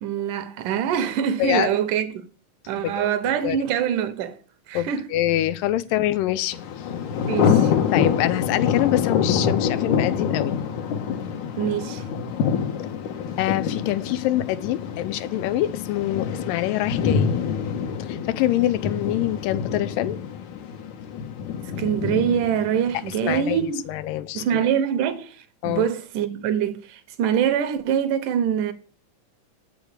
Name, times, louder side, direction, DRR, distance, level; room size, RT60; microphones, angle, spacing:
voice 1, 0.0-2.3 2.7-4.4 4.7-5.1 7.3-7.7 11.6-12.0 21.8-23.9 24.3-28.7, right 9 dB, 75° right, 2.4 m, -24 dB
voice 2, 2.8-3.6 4.7-6.6 7.9-10.6 13.4-17.3 18.0-20.2 23.2-24.6 25.6-25.9, left 14 dB, 90° left, 2.4 m, -25 dB
Thunder, 6.5-23.5, left 7 dB, 70° left, 2.4 m, -26 dB
7.9 x 7.0 x 8.1 m
omnidirectional pair, 3.8 m